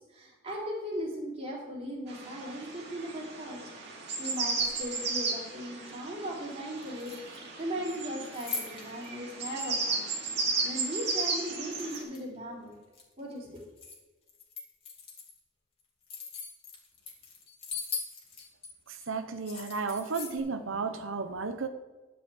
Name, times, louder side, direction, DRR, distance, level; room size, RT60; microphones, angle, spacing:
voice 1, 0.1-10.3 10.6-12.8 13.2-13.6, equal, 35° right, -4 dB, 3.8 m, -38 dB
sound 1, 2.1-12.0, right 4 dB, 60° right, 2.6 m, -34 dB
sound 2, 4.2-4.9 6.8-7.6 7.9-9.1 9.6-9.7 11.1-12.4 12.7-14.0 14.3-15.4 15.8-18.7 19.0-19.1 19.4-20.4, left 5 dB, 30° left, 2.6 m, -41 dB
voice 2, 19.1-21.7, right 4 dB, 85° right, 9 dB, 0.8 m, -33 dB
11.5 x 5.7 x 7.8 m, 1.2 s
head